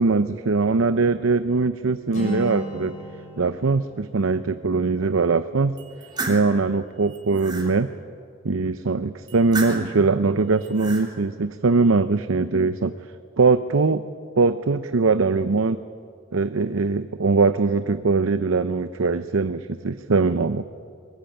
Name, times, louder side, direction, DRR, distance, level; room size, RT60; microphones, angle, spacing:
voice 1, 0.0-2.9 3.4-5.8 6.3-7.9 8.4-12.9 13.4-14.0 14.4-15.8 16.3-20.6, right 4 dB, 90° right, 11 dB, 0.7 m, -21 dB
Acoustic guitar, 2.1-6.0, equal, 40° left, 6.3 m, -37 dB
sound 1, 5.8-6.5 7.0-7.7 9.3-10.0 10.6-11.1, right 3 dB, 20° right, 3.2 m, -32 dB
23.0 x 21.5 x 9.1 m, 2.3 s
head